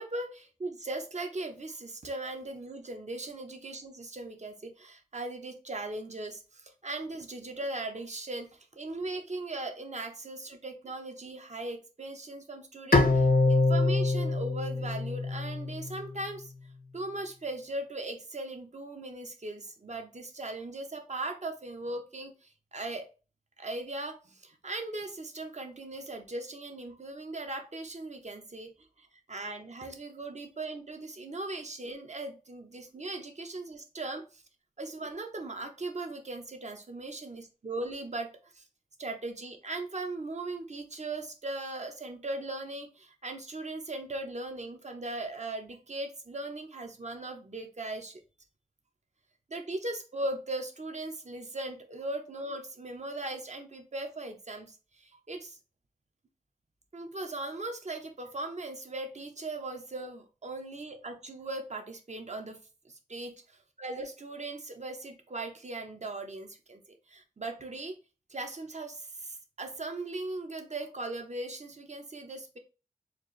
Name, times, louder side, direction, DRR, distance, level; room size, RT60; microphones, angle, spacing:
voice 1, 0.0-16.5 16.9-23.1 23.6-28.7 29.0-34.4 34.8-38.6 39.0-48.2 49.5-55.6 56.9-62.6 62.8-63.3 63.8-66.8 67.1-68.0 68.3-72.6, right 2 dB, 50° right, 5 dB, 0.7 m, -39 dB
Bowed string instrument, 12.9-16.1, left 3 dB, 80° left, 0.7 m, -25 dB
4.2 x 2.5 x 3.1 m, 0.33 s
wide cardioid pair, 65°, 15 cm